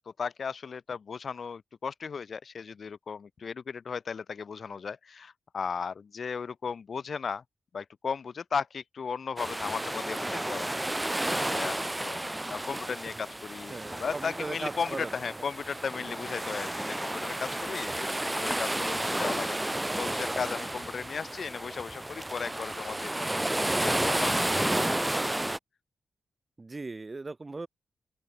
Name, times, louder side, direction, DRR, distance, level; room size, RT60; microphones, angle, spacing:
voice 1, 0.2-7.4 7.7-10.7 11.0-12.2 12.5-25.0, left 6 dB, 50° left, 1.1 m, -36 dB
sound 1, 9.4-25.6, right 1 dB, 10° right, 0.3 m, -32 dB
voice 2, 13.7-15.1 26.6-27.7, right 3 dB, 25° right, 1.9 m, -38 dB
open air
wide cardioid pair, 110°, 0 cm